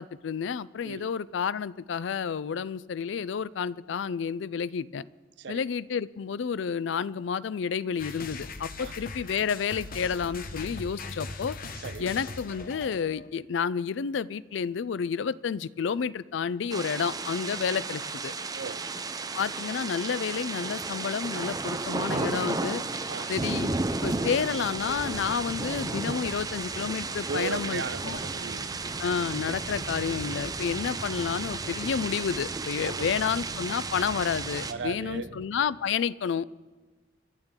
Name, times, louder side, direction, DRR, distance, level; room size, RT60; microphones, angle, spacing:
voice 1, 0.0-5.1 5.5-11.6 12.0-18.3 19.3-22.8 23.3-23.7 24.0-28.2 29.0-36.5, left 6 dB, 65° left, 0.4 m, -30 dB
sound 1, 8.0-13.3, left 3 dB, 45° left, 1.0 m, -40 dB
sound 2, 16.7-34.7, right 3 dB, 20° right, 0.6 m, -33 dB
voice 2, 18.5-18.8 23.1-23.3 27.3-28.7 32.8-33.2 34.7-35.3, right 5 dB, 60° right, 0.5 m, -36 dB
sound 3, 27.5-35.5, right 1 dB, 45° right, 1.7 m, -46 dB
26.0 x 11.5 x 3.7 m
head